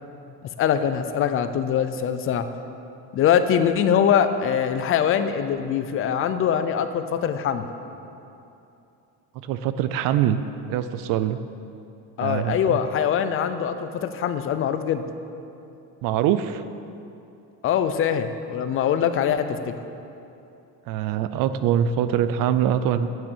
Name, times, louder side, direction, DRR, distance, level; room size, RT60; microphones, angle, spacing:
voice 1, 0.6-2.5 3.1-7.7 12.2-15.0 17.6-19.7, left 8 dB, 35° left, 9 dB, 0.5 m, -23 dB
voice 2, 9.4-10.4 10.7-11.4 12.2-12.8 16.0-16.6 20.9-23.1, right 10 dB, 60° right, 12 dB, 0.5 m, -23 dB
9.6 x 7.6 x 7.4 m, 2.8 s
cardioid pair, 160°, 38 cm